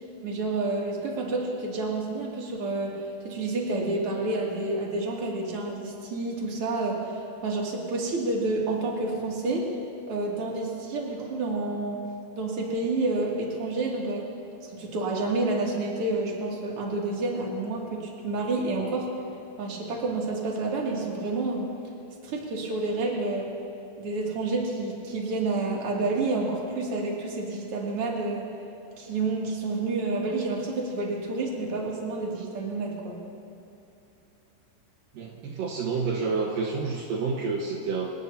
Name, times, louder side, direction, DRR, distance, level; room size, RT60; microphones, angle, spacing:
voice 1, 0.2-9.7 10.1-12.0 12.3-14.3 14.6-19.1 19.6-21.7 22.2-23.5 24.0-28.5 29.0-33.2, right 2 dB, 40° right, -3 dB, 2.3 m, -29 dB
voice 2, 35.1-38.1, right 4 dB, 85° right, -1 dB, 2.0 m, -29 dB
26.0 x 18.5 x 2.8 m, 2.9 s
omnidirectional pair, 6.0 m